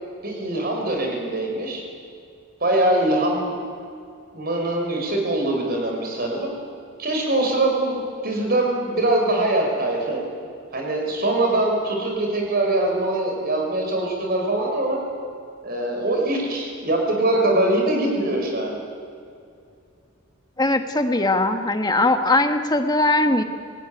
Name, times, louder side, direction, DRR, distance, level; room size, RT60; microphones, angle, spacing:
voice 1, 0.2-1.8 2.6-3.6 4.3-6.5 7.0-10.2 10.7-15.0 15.6-18.7, right 1 dB, 45° right, 1 dB, 5.8 m, -23 dB
voice 2, 20.6-23.4, left 2 dB, 20° left, 7 dB, 1.6 m, -20 dB
27.5 x 18.5 x 9.9 m, 2.4 s
head